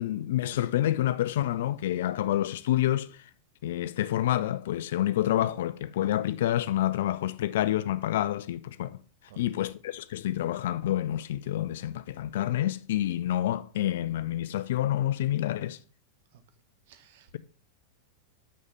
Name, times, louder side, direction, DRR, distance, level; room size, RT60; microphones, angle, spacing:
voice 1, 0.0-3.2 3.6-9.0 9.4-15.8, left 13 dB, 55° left, 0.6 m, -28 dB
voice 2, 16.9-17.4, right 9 dB, 55° right, 1.6 m, -55 dB
6.7 x 6.4 x 7.2 m
figure-of-eight pair, 90°, 0 cm